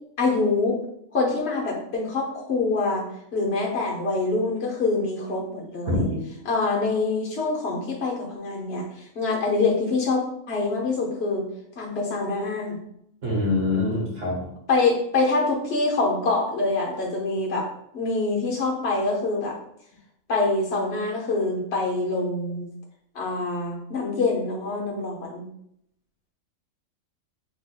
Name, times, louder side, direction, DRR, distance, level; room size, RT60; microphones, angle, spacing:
voice 1, 0.2-0.8 1.1-6.0 6.5-11.5 11.8-12.8 14.7-17.7 17.9-19.6 20.3-22.7 23.1-25.5, left 3 dB, 50° left, -2 dB, 1.3 m, -25 dB
voice 2, 5.9-6.3 13.2-14.5, left 2 dB, 60° right, -4 dB, 1.8 m, -24 dB
6.0 x 3.8 x 2.3 m, 0.74 s
omnidirectional pair, 1.4 m